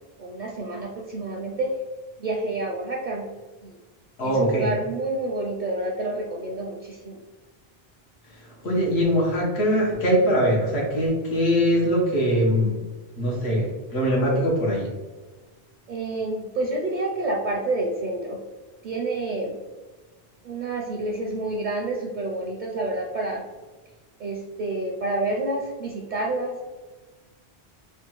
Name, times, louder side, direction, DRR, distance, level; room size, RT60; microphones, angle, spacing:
voice 1, 0.2-1.8 2.2-3.2 3.6-3.7 4.2-7.2 15.9-18.4 18.8-19.5 20.4-23.4 24.2-26.7, right 2 dB, 55° right, -1 dB, 0.5 m, -28 dB
voice 2, 4.2-4.7 8.6-12.8 13.2-14.9, equal, 90° left, -3 dB, 1.2 m, -22 dB
3.3 x 2.3 x 3.0 m, 1.2 s
omnidirectional pair, 1.1 m